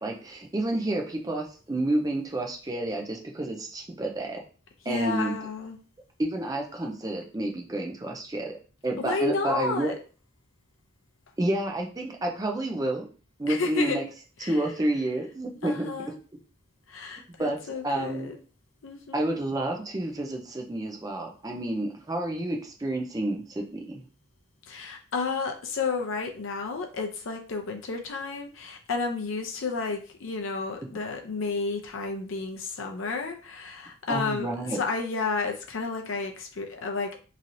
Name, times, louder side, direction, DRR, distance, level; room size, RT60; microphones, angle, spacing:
voice 1, 0.0-4.4 4.9-5.3 6.2-8.5 8.8-9.9 11.4-13.1 13.4-14.0 14.5-15.9 17.4-18.3 19.1-24.0 34.1-34.8, right 1 dB, 15° right, 2 dB, 0.4 m, -30 dB
voice 2, 4.9-5.8 9.0-9.9 13.5-14.0 14.4-14.6 15.6-16.2 16.9-18.4 18.8-19.3 24.7-37.2, left 4 dB, 70° left, 3 dB, 0.5 m, -31 dB
3.0 x 2.7 x 2.6 m, 0.38 s
head